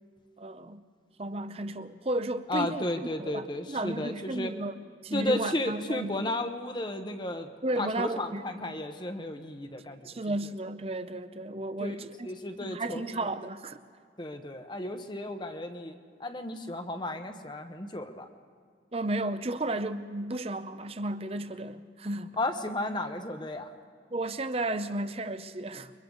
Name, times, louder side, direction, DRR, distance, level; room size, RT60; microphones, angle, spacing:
voice 1, 0.4-0.8 1.2-2.9 3.2-6.1 7.6-8.7 10.0-12.3 12.6-13.8 18.9-22.4 24.1-25.9, right 2 dB, 35° right, 0.7 m, -33 dB
voice 2, 2.5-4.5 5.1-10.1 11.8-12.0 12.2-13.0 14.2-18.3 22.4-23.7, left 1 dB, 25° left, 1.0 m, -33 dB
29.5 x 23.0 x 4.0 m
head